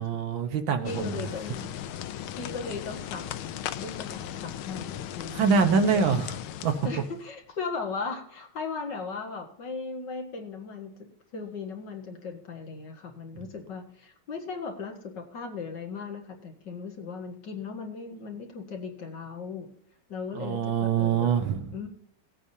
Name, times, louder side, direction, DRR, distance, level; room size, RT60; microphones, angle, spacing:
voice 1, 0.0-1.2 5.3-6.3 6.6-6.9 20.4-21.7, right 6 dB, 70° right, 7 dB, 1.7 m, -25 dB
voice 2, 0.8-1.7 2.3-3.3 3.8-5.6 5.9-6.2 6.8-19.7 20.1-21.3 21.7-21.9, left 4 dB, 55° left, 2 dB, 2.2 m, -37 dB
sound 1, 0.9-7.2, left 11 dB, 85° left, 1.5 m, -37 dB
18.5 x 8.5 x 2.8 m, 0.64 s
omnidirectional pair, 2.3 m